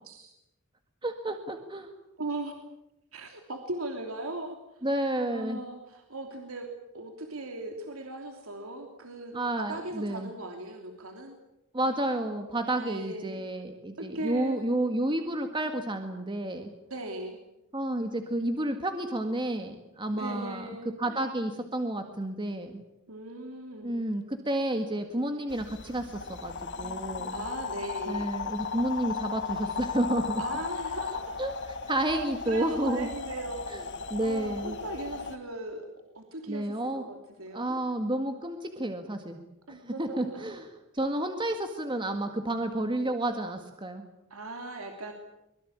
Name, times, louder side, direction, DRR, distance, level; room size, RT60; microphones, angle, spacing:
voice 1, 1.0-1.9 4.8-5.6 9.3-10.3 11.7-16.7 17.7-20.7 21.0-22.8 23.8-27.4 28.1-30.4 31.4-31.5 31.9-33.1 33.7-33.8 34.1-34.8 36.5-37.0 37.5-39.4 39.7-40.7 40.9-44.0, right 1 dB, 25° right, 6 dB, 1.9 m, -31 dB
voice 2, 2.2-2.5 3.1-4.9 5.3-6.7 6.9-11.4 12.8-13.4 14.0-14.7 16.9-17.4 20.1-21.2 23.1-24.0 27.3-28.3 30.4-31.2 32.4-35.8 36.1-37.8 39.7-40.6 44.3-45.1, right 2 dB, 85° right, 4 dB, 3.1 m, -38 dB
sound 1, 25.5-35.4, left 5 dB, 60° left, 1.9 m, -36 dB
24.5 x 22.0 x 8.8 m, 0.91 s
head